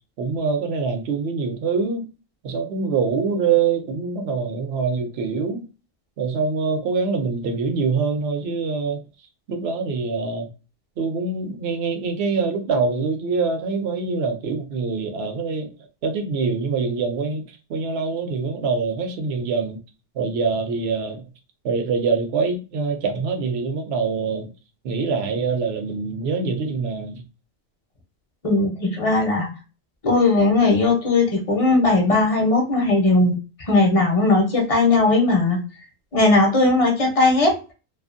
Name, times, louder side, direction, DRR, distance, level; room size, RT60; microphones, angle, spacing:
voice 1, 0.2-2.1 2.4-5.7 6.2-9.0 9.5-10.5 11.0-15.7 16.0-19.8 20.1-21.2 21.6-24.5 24.8-27.2, right 4 dB, 65° right, 0.7 m, -24 dB
voice 2, 28.4-29.5 30.0-35.6 36.1-37.6, left 2 dB, 35° left, 0.6 m, -18 dB
2.5 x 2.4 x 2.5 m
omnidirectional pair, 1.3 m